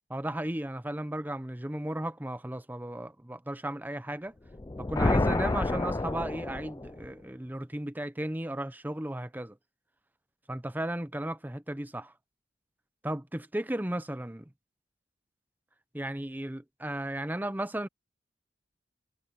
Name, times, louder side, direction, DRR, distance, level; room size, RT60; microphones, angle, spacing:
voice 1, 0.1-4.3 4.8-9.6 10.5-12.1 13.0-14.5 15.9-17.9, right 1 dB, 10° right, 0.7 m, -35 dB
sound 1, 4.5-7.1, left 2 dB, 20° left, 0.4 m, -29 dB
head